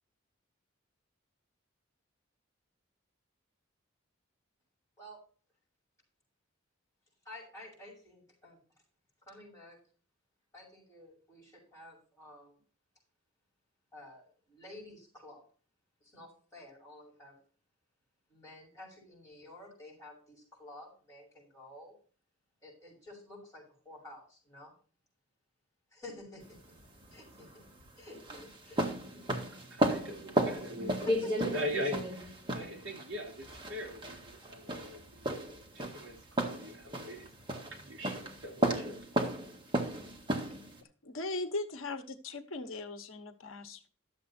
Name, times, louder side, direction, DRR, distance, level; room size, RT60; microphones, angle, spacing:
voice 1, 7.2-8.6 9.3-9.8 10.5-12.6 13.9-15.4 16.0-17.4 18.3-21.9 22.6-24.7 25.9-26.8 27.1-27.6 28.0-29.5 31.1-31.5 32.6-32.7 39.2-39.3, left 1 dB, 15° left, -4 dB, 6.5 m, -51 dB
sound 1, 26.4-40.8, right 1 dB, 25° right, 1.9 m, -34 dB
voice 2, 29.5-39.3, equal, 70° right, 3 dB, 3.3 m, -42 dB
voice 3, 41.0-43.9, left 2 dB, 85° left, 8 dB, 1.1 m, -39 dB
12.0 x 7.5 x 4.3 m, 0.39 s
head